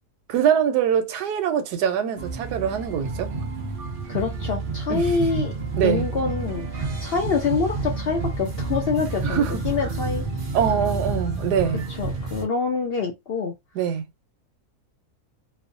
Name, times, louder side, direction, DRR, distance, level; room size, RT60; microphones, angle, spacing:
voice 1, 0.3-3.3 4.9-5.1 5.8-6.1 9.2-9.6 10.5-11.8 13.7-14.0, right 8 dB, 90° right, 1.2 m, -23 dB
sound 1, 2.2-12.4, right 3 dB, 55° right, 0.6 m, -29 dB
voice 2, 4.1-5.5 5.8-10.2 12.0-13.5, left 5 dB, 70° left, 0.5 m, -26 dB
3.0 x 2.0 x 2.5 m
omnidirectional pair, 1.7 m